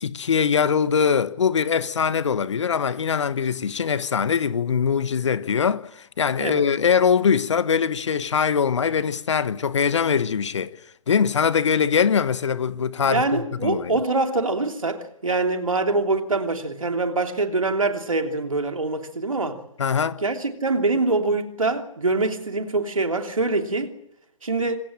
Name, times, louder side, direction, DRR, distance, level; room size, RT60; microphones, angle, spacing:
voice 1, 0.0-10.7 11.1-14.0 19.8-20.2, left 6 dB, 60° left, 1.3 m, -22 dB
voice 2, 13.0-19.6 20.2-23.9 24.4-24.8, right 3 dB, 75° right, 3.1 m, -24 dB
26.5 x 17.5 x 8.8 m
figure-of-eight pair, 125°, 17 cm